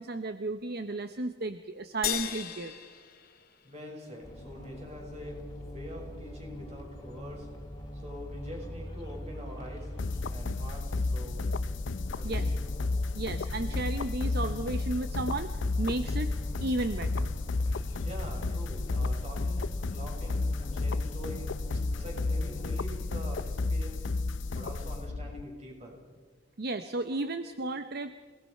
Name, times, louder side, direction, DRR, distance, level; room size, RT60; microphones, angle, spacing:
voice 1, 0.0-2.7 12.2-12.5 13.1-15.5 15.8-16.3 16.6-17.3 26.6-28.1, right 2 dB, 55° right, 10 dB, 0.8 m, -33 dB
sound 1, 2.0-4.6, left 10 dB, 50° left, 2.0 m, -37 dB
voice 2, 3.6-5.5 5.7-7.5 7.9-9.9 10.3-11.4 12.1-12.5 18.0-24.1 24.5-26.0, equal, 35° right, 0 dB, 6.4 m, -44 dB
sound 2, 4.2-22.8, equal, 20° left, 3.0 m, -43 dB
sound 3, 10.0-25.4, left 3 dB, 75° left, 0.6 m, -32 dB
28.5 x 19.0 x 5.6 m, 1.4 s
head